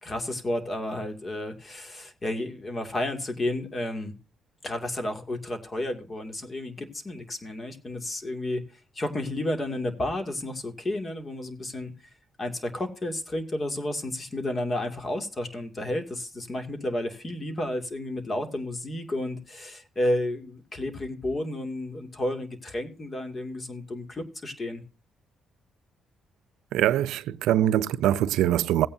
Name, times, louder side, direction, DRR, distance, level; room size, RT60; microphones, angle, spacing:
voice 1, 0.0-4.2 4.6-8.6 8.9-11.9 12.4-24.8, left 1 dB, 30° left, 2.3 m, -31 dB
voice 2, 26.7-28.9, right 12 dB, 90° right, 0.5 m, -23 dB
17.0 x 8.8 x 2.7 m
cardioid pair, 90°, 0 cm